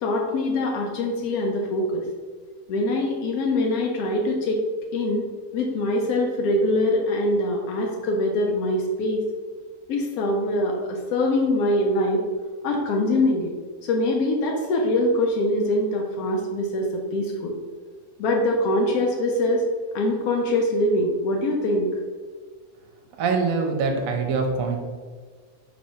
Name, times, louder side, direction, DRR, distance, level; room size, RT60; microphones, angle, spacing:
voice 1, 0.0-2.1 2.7-4.6 4.9-5.3 5.5-9.3 9.9-12.2 12.6-13.5 13.8-17.5 18.2-19.6 19.9-21.9, left 1 dB, 90° left, 1 dB, 1.1 m, -23 dB
voice 2, 23.2-24.8, right 4 dB, 75° right, 3 dB, 1.0 m, -24 dB
4.3 x 3.0 x 2.7 m, 1.5 s
omnidirectional pair, 1.5 m